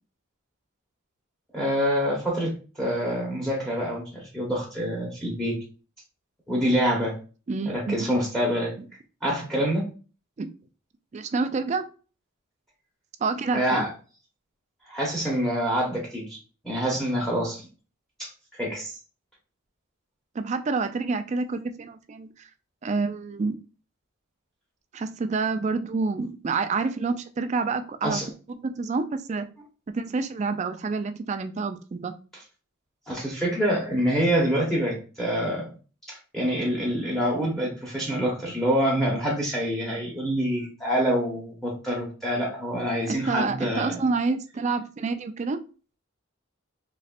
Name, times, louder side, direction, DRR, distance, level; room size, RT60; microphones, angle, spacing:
voice 1, 1.5-2.5 2.8-5.6 6.5-7.1 7.6-8.7 9.2-9.8 13.5-13.9 14.9-16.4 16.6-17.6 18.2-18.3 18.6-18.9 28.0-28.3 33.1-35.7 36.1-44.0, equal, ahead, -2 dB, 1.0 m, -26 dB
voice 2, 7.5-8.2 10.4-10.5 11.1-11.9 13.2-13.8 20.3-22.5 22.8-23.6 24.9-28.2 28.5-29.5 29.9-32.1 43.1-45.6, right 4 dB, 35° right, 9 dB, 0.3 m, -28 dB
4.1 x 3.1 x 2.4 m, 0.36 s
head